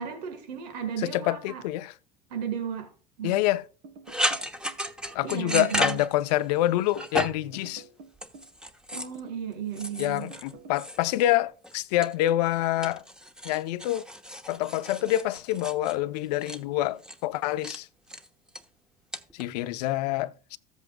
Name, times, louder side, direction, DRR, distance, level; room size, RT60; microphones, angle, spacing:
voice 1, 0.0-1.6 2.3-2.9 3.2-3.4 5.2-6.0 8.9-10.3, right 8 dB, 85° right, 1.6 m, -34 dB
voice 2, 1.0-1.9 3.2-3.6 5.1-7.8 10.0-13.0 13.4-14.0 14.5-17.9 19.3-20.6, left 15 dB, 80° left, 0.7 m, -27 dB
sound 1, 3.8-4.8 5.2-5.8 6.6-7.2 7.5-8.6 8.9-9.5 10.3-10.8, right 3 dB, 55° right, 1.4 m, -48 dB
sound 2, 4.1-6.6 6.9-7.5 8.2-9.2 9.7-11.4 11.6-12.5 12.8-16.6 17.0-17.2 17.6-17.8 18.1-18.6 19.1-19.4, equal, 5° right, 1.0 m, -33 dB
14.5 x 8.1 x 2.3 m
supercardioid pair, 90°, 20 cm